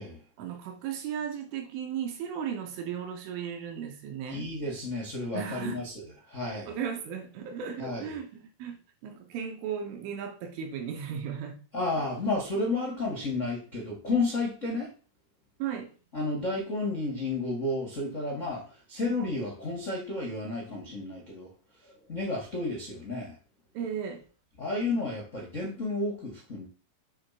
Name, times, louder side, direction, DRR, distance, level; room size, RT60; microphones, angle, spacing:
voice 1, 0.4-4.5 5.3-5.8 6.7-11.8 15.6-16.0 23.8-24.3, right 8 dB, 75° right, 3.8 m, -36 dB
voice 2, 4.3-6.8 7.8-8.2 11.7-14.9 16.1-21.5 22.1-23.3 24.6-26.7, left 2 dB, 85° left, 0.6 m, -32 dB
8.6 x 3.7 x 6.0 m
omnidirectional pair, 5.8 m